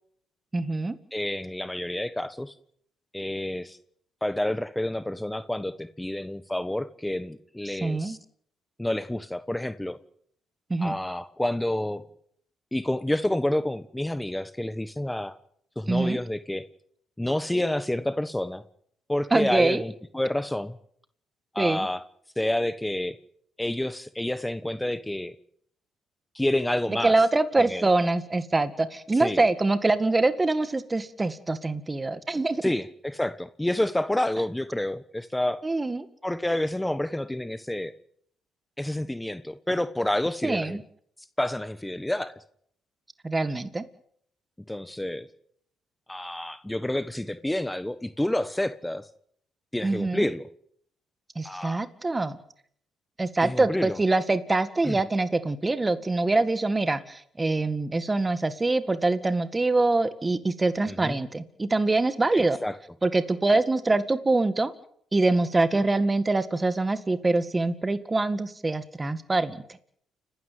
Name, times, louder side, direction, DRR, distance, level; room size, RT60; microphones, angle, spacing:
voice 1, 0.5-1.0 7.7-8.2 10.7-11.0 15.9-16.2 19.3-19.8 21.6-21.9 26.9-32.6 35.6-36.1 40.4-40.8 43.2-43.8 49.8-50.3 51.4-52.4 53.2-62.6 63.0-64.7 65.1-69.6, right 2 dB, 20° right, 12 dB, 1.9 m, -24 dB
voice 2, 1.1-2.5 3.1-3.8 4.2-8.2 8.8-10.0 10.8-12.0 12.7-15.4 15.8-16.6 17.2-18.6 19.1-20.8 21.5-22.0 22.4-23.2 23.6-25.3 26.3-27.1 27.6-27.9 29.2-29.4 32.6-35.6 36.2-37.9 38.8-40.8 41.4-42.3 44.7-45.3 46.1-49.1 49.7-50.5 51.4-51.8 53.4-54.0 54.8-55.0 60.9-61.2 62.3-62.7 65.7-65.8, left 1 dB, 10° left, 12 dB, 1.3 m, -29 dB
29.5 x 13.0 x 9.3 m, 0.66 s
cardioid pair, 80°, 0 cm